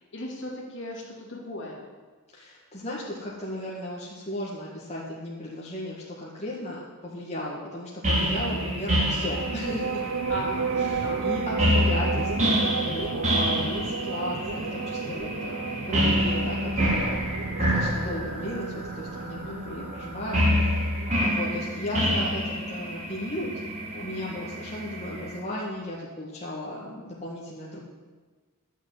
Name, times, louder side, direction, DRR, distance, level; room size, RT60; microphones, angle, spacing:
voice 1, 0.1-1.9 8.2-8.6 10.3-10.7 11.0-11.2 19.4-19.8, left 1 dB, 55° left, -2 dB, 2.6 m, -37 dB
voice 2, 2.3-10.0 10.7-15.6 15.9-23.5 23.9-27.8, left 1 dB, 30° left, -5 dB, 1.8 m, -35 dB
sound 1, 8.0-25.3, equal, 30° right, 2.4 m, -28 dB
sound 2, 9.2-21.1, right 5 dB, 60° right, 0.6 m, -33 dB
12.0 x 6.5 x 7.9 m, 1.4 s
head